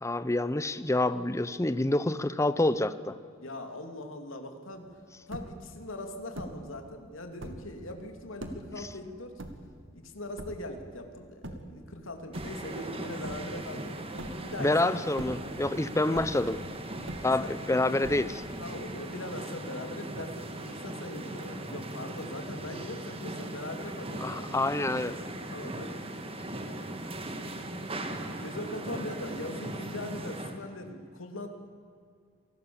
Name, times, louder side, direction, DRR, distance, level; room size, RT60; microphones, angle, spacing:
voice 1, 0.0-3.2 14.6-16.6 17.2-18.4 24.2-25.2, left 2 dB, 15° left, 14 dB, 0.6 m, -27 dB
voice 2, 3.4-4.9 5.3-9.4 9.9-13.9 14.4-15.2 17.6-17.7 18.6-24.5 25.5-26.0 26.9-27.1 28.4-31.5, left 1 dB, 80° left, 5 dB, 2.8 m, -41 dB
sound 1, 4.8-4.9 5.1-5.8 6.3-6.7 7.3-7.8 8.4-8.8 9.4-10.0 10.4-10.8 11.4-11.8 12.2-12.9 13.2-13.7 14.2-14.7 15.1-15.7 16.1-16.6 17.1-17.7 18.0-18.6, right 1 dB, 65° right, 2.3 m, -42 dB
sound 2, 12.3-30.6, right 1 dB, 30° right, 1.9 m, -39 dB
27.5 x 19.0 x 7.1 m, 2.3 s
head